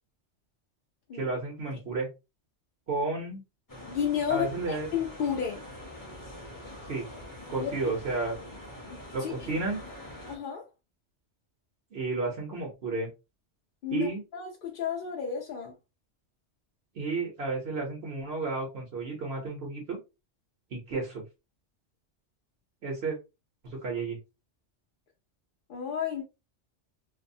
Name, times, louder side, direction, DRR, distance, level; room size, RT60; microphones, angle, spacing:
voice 1, 1.1-2.1 2.9-3.4 4.3-4.9 6.9-7.0 7.5-8.4 9.1-9.8 11.9-13.1 13.9-14.2 16.9-20.0 20.7-21.2 22.8-23.2 23.6-24.2, right 3 dB, 60° right, 1.0 m, -32 dB
sound 1, 3.7-10.4, left 1 dB, 20° left, 0.7 m, -44 dB
voice 2, 3.9-5.6 7.6-7.7 8.9-9.3 10.3-10.6 13.8-15.7 25.7-26.2, left 8 dB, 55° left, 0.6 m, -32 dB
2.6 x 2.0 x 2.6 m
omnidirectional pair, 1.2 m